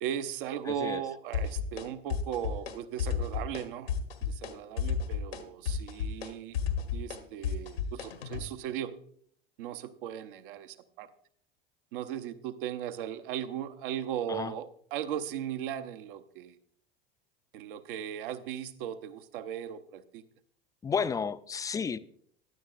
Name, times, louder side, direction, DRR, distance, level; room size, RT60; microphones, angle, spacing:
voice 1, 0.0-3.9 4.2-6.6 6.9-8.9 9.6-11.1 11.9-16.6 17.5-20.2, right 10 dB, 65° right, 0.8 m, -37 dB
voice 2, 0.7-1.0 14.3-14.5 20.8-22.0, left 6 dB, 10° left, 0.3 m, -32 dB
sound 1, 1.3-1.8 2.1-2.7 3.0-3.6 3.9-4.5 4.8-8.4, left 7 dB, 85° left, 1.2 m, -32 dB
15.5 x 10.0 x 2.5 m
figure-of-eight pair, 80°, 29 cm